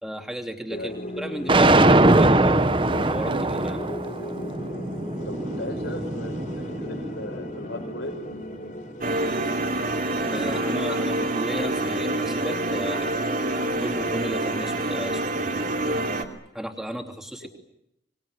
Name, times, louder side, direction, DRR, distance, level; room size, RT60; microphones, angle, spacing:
voice 1, 0.0-3.8 10.3-13.1 13.8-15.6 16.5-17.5, equal, ahead, 3 dB, 2.9 m, -34 dB
voice 2, 0.7-1.1 5.2-8.2 17.4-17.5, left 1 dB, 80° left, 2 dB, 5.6 m, -36 dB
sound 1, 0.7-10.8, equal, 40° left, 3.3 m, -37 dB
sound 2, 1.5-7.6, right 2 dB, 30° right, 1.1 m, -22 dB
sound 3, 9.0-16.2, right 1 dB, 50° right, 3.1 m, -26 dB
25.5 x 22.0 x 9.8 m, 0.79 s
head